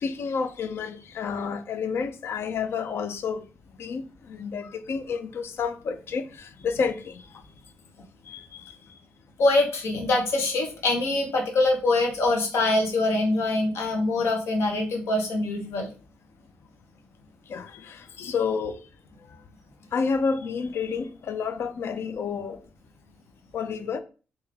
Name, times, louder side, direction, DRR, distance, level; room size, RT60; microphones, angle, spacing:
voice 1, 0.0-3.4 3.8-7.3 8.3-8.7 17.5-18.8 19.9-22.6 23.5-24.0, left 5 dB, 65° left, 0.5 m, -30 dB
voice 2, 9.4-15.9, left 2 dB, 80° left, 1.0 m, -24 dB
3.2 x 2.7 x 3.5 m
cardioid pair, 105°, 5 cm